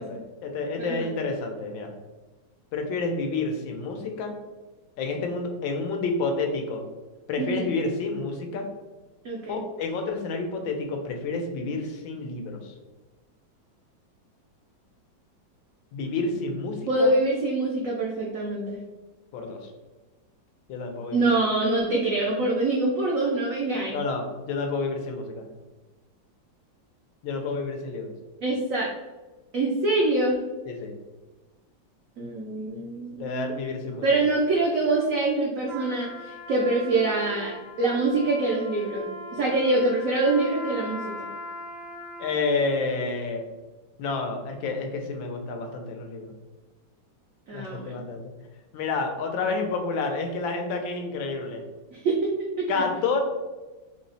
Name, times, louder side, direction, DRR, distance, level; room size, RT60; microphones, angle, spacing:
voice 1, 0.0-1.9 2.7-4.3 5.0-6.8 7.3-8.6 9.5-12.7 15.9-17.1 19.3-19.7 20.7-21.3 23.9-25.5 27.2-28.1 30.7-30.9 33.2-34.0 42.2-43.4 44.0-46.3 47.5-48.3 48.7-51.6 52.7-53.2, left 3 dB, 85° left, 4 dB, 1.4 m, -29 dB
voice 2, 0.8-1.1 7.4-7.7 9.2-9.6 16.9-18.8 21.1-24.0 28.4-28.9 29.5-30.4 32.2-33.6 34.0-39.0 39.3-41.3 47.5-47.9 51.9-52.3 52.6-52.7, right 2 dB, 90° right, -2 dB, 0.7 m, -25 dB
Trumpet, 35.7-42.6, equal, 35° right, 1.1 m, -39 dB
4.2 x 2.0 x 3.9 m, 1.2 s
omnidirectional pair, 2.1 m